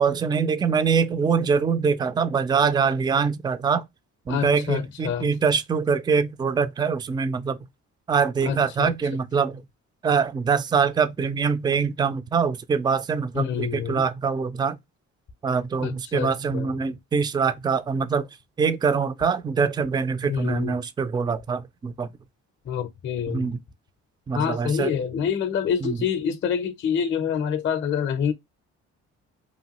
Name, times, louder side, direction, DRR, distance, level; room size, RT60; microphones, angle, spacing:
voice 1, 0.0-3.8 4.3-7.6 8.1-9.6 10.0-14.8 15.4-18.3 18.6-22.1 23.3-23.6 24.3-24.9 25.8-26.0, right 6 dB, 15° right, 0.3 m, -24 dB
voice 2, 4.3-5.3 8.4-8.9 13.3-14.1 15.8-16.7 20.2-20.8 22.6-23.5 24.3-28.3, left 7 dB, 40° left, 0.5 m, -27 dB
3.0 x 2.2 x 2.8 m
cardioid pair, 90°, 30 cm